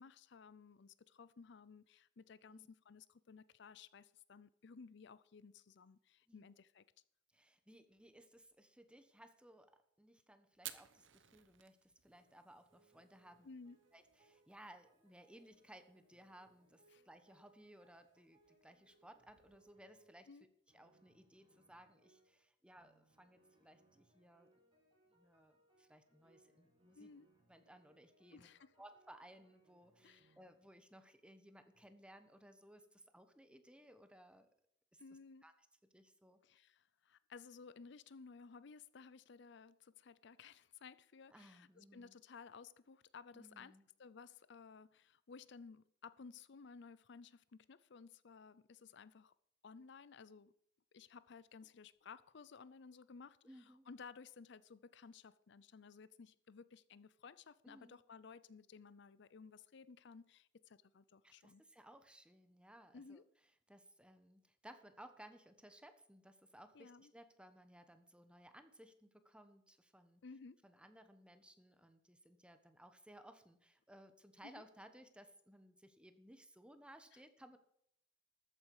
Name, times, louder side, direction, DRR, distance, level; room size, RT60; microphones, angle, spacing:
voice 1, 0.0-6.8 13.4-13.8 16.9-17.0 20.3-20.5 26.9-27.3 28.3-28.7 30.0-30.4 35.0-35.4 36.4-43.7 44.0-49.3 49.6-50.5 50.9-61.6 62.9-63.2 66.7-67.1 70.2-70.6 74.4-74.6 77.1-77.2, left 5 dB, 65° left, 0.5 m, -57 dB
voice 2, 7.3-9.7 10.0-13.5 13.9-20.3 20.7-24.5 25.1-27.1 27.5-28.5 28.8-34.5 34.9-35.0 35.4-35.5 35.9-36.4 41.3-42.1 43.3-43.9 53.4-53.9 57.6-58.0 61.2-63.2 63.7-70.2 70.6-77.6, right 1 dB, 5° right, 1.2 m, -61 dB
Fire, 10.5-19.7, right 12 dB, 80° right, 1.0 m, -60 dB
sound 1, 12.0-12.4 12.7-20.3 20.7-22.4 22.7-30.6 31.7-31.9, right 1 dB, 30° right, 5.7 m, -74 dB
13.5 x 9.2 x 4.8 m
head